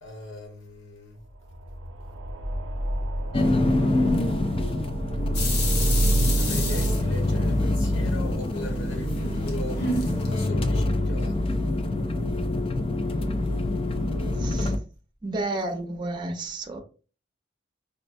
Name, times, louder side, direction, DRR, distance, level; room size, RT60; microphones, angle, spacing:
voice 1, 0.0-1.2 6.4-11.7, left 1 dB, 80° left, 1.3 m, -39 dB
sound 1, 1.1-12.4, equal, 90° right, 0.6 m, -36 dB
sound 2, 3.3-14.8, left 1 dB, 30° left, 0.4 m, -25 dB
sound 3, 5.3-7.8 8.2-10.4, left 2 dB, 60° left, 1.0 m, -31 dB
voice 2, 14.4-14.7 15.2-16.8, right 2 dB, 25° right, 0.6 m, -31 dB
5.3 x 2.1 x 2.6 m
head